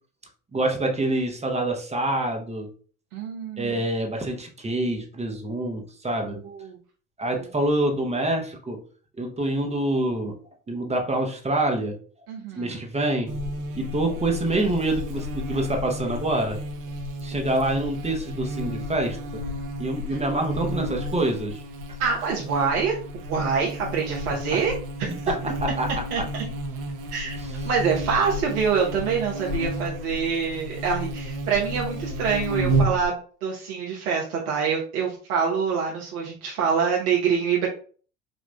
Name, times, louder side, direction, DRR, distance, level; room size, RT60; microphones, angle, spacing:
voice 1, 0.5-2.7 3.6-6.4 7.2-8.8 9.2-10.4 10.7-12.0 12.6-13.3 13.7-16.6 17.2-19.4 19.8-21.6 25.3-25.9 27.4-27.5, right 1 dB, 15° right, 2 dB, 0.8 m, -26 dB
voice 2, 3.1-3.8 6.3-6.8 7.4-7.5 12.3-12.8 20.1-20.2 22.0-23.0 23.3-24.7 25.0-25.1 26.1-26.4 27.1-27.3 27.6-37.7, right 6 dB, 70° right, -3 dB, 0.9 m, -25 dB
Buzz, 13.3-33.1, equal, 45° right, 0.8 m, -32 dB
5.2 x 2.4 x 2.2 m, 0.41 s
hypercardioid pair, 75°, 46 cm